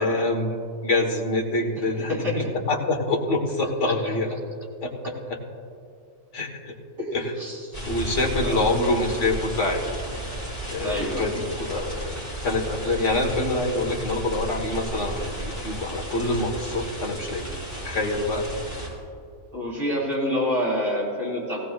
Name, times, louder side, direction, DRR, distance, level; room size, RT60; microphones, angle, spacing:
voice 1, 0.0-4.4 4.8-5.4 6.3-6.8 7.1-7.2 7.9-9.8 10.7-12.2 12.4-17.5 17.8-18.5, left 2 dB, 65° left, 0 dB, 1.7 m, -26 dB
voice 2, 1.8-2.5 3.8-4.0 7.0-7.8 8.4-8.8 10.8-11.3 19.5-21.6, left 1 dB, 45° right, -5 dB, 3.4 m, -28 dB
sound 1, 7.7-18.9, right 1 dB, 25° left, 3.4 m, -34 dB
17.0 x 16.5 x 2.4 m, 2.3 s
omnidirectional pair, 1.4 m